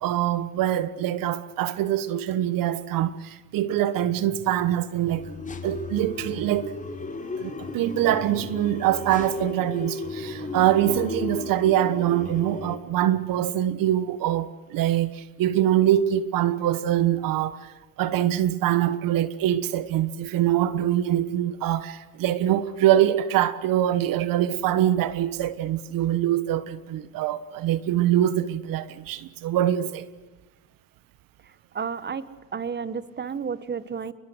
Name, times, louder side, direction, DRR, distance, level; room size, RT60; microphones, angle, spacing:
voice 1, 0.0-5.2 5.6-6.7 7.4-30.1, right 12 dB, 70° right, 1.3 m, -24 dB
sound 1, 5.1-12.8, left 3 dB, 20° left, 5.7 m, -35 dB
voice 2, 31.7-34.1, right 6 dB, 30° right, 1.5 m, -32 dB
29.0 x 22.0 x 8.1 m
supercardioid pair, 85°, 35 cm